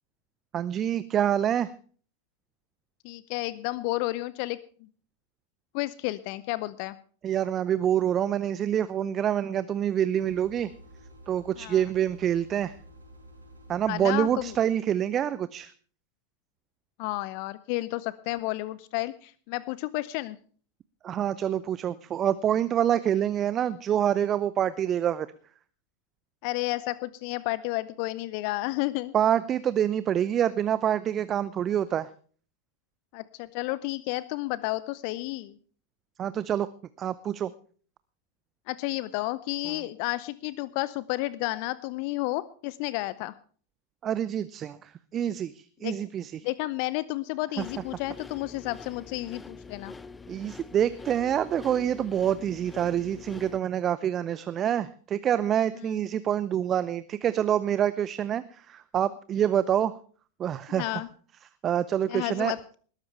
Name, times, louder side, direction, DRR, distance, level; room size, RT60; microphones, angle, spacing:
voice 1, 0.5-1.7 7.2-10.7 11.3-12.8 13.7-15.7 21.0-25.3 29.1-32.1 36.2-36.7 37.0-37.5 39.7-39.8 44.0-46.5 47.6-47.7 50.3-60.0 60.4-61.0 61.6-62.6, right 10 dB, 30° right, 16 dB, 0.6 m, -26 dB
voice 2, 3.0-4.6 5.7-6.9 11.6-11.8 13.9-14.5 17.0-20.4 26.4-29.1 33.1-35.6 38.7-43.3 45.8-45.9 46.4-49.9 60.7-61.1 62.1-62.6, left 19 dB, 45° left, 18 dB, 0.6 m, -31 dB
sound 1, 10.1-14.5, equal, 85° right, 4.9 m, -50 dB
sound 2, 47.6-53.6, left 4 dB, 10° left, 0.7 m, -45 dB
20.0 x 12.5 x 3.3 m, 0.43 s
figure-of-eight pair, 90°, 0 cm